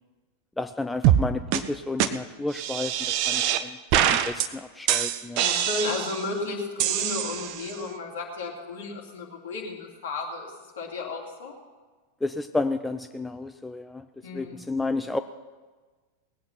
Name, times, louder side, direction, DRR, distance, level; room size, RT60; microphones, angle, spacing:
voice 1, 0.6-5.4 12.2-14.1 14.3-15.2, left 2 dB, 5° left, 9 dB, 0.4 m, -31 dB
sound 1, 1.0-1.2 1.5-1.6 2.0-2.1 2.5-3.6 3.9-4.5 4.9-6.3 6.8-7.7, right 11 dB, 45° right, 0.7 m, -24 dB
voice 2, 5.3-11.5 14.2-14.6, left 3 dB, 60° left, -1 dB, 2.8 m, -33 dB
19.0 x 8.6 x 5.9 m, 1.3 s
figure-of-eight pair, 90°, 0 cm